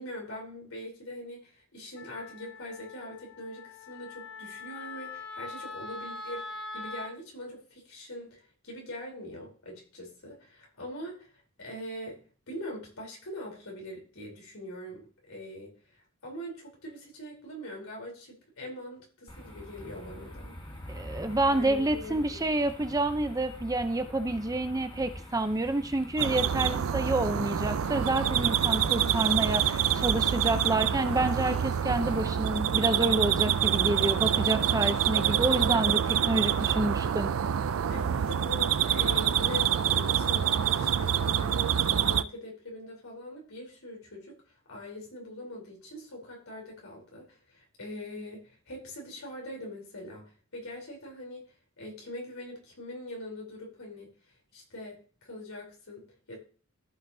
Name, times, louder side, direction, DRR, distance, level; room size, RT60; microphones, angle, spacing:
voice 1, 0.0-6.5 6.7-12.2 12.5-21.0 21.5-22.2 37.9-44.3 44.7-51.4 51.8-54.1 54.5-56.4, left 1 dB, 85° left, -1 dB, 3.7 m, -42 dB
Wind instrument woodwind instrument, 2.0-7.1, left 3 dB, 55° left, 1.0 m, -42 dB
sound 1, 19.3-32.3, left 1 dB, 25° left, 1.4 m, -44 dB
voice 2, 20.9-37.3, right 2 dB, 15° right, 9 dB, 0.6 m, -28 dB
sound 2, 26.2-42.2, right 9 dB, 70° right, 0.4 m, -26 dB
14.5 x 5.7 x 2.7 m, 0.41 s
head